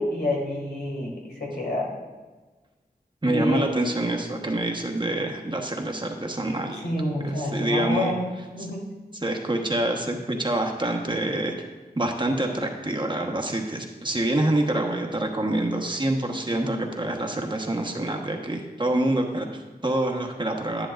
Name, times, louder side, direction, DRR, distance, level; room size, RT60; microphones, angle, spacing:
voice 1, 0.0-2.0 3.2-3.7 6.8-8.3 8.5-8.9, left 1 dB, 80° left, -2 dB, 2.4 m, -28 dB
voice 2, 3.2-6.8 7.2-8.1 9.2-11.5 11.9-20.9, right 1 dB, 30° right, 2 dB, 1.2 m, -26 dB
10.5 x 10.5 x 2.5 m, 1.3 s
wide cardioid pair, 75°, 17 cm